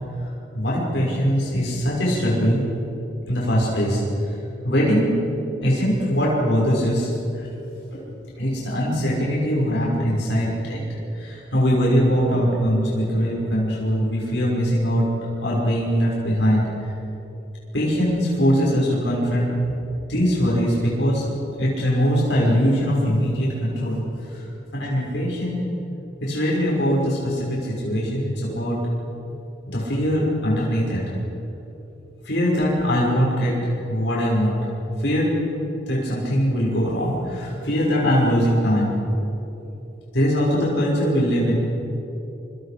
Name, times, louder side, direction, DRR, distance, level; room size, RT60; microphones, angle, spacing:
voice 1, 0.5-2.6 3.3-4.0 4.6-5.2 5.6-7.1 7.3-7.5 7.9-8.1 8.4-10.8 11.1-15.1 15.4-16.6 17.7-19.5 20.1-21.2 21.6-24.0 24.3-24.4 24.7-25.6 26.2-28.8 29.7-31.0 32.2-33.6 33.9-34.5 35.0-35.3 35.9-38.9 40.1-41.5, equal, 90° left, -4 dB, 6.0 m, -21 dB
27.0 x 25.5 x 5.2 m, 3.0 s
head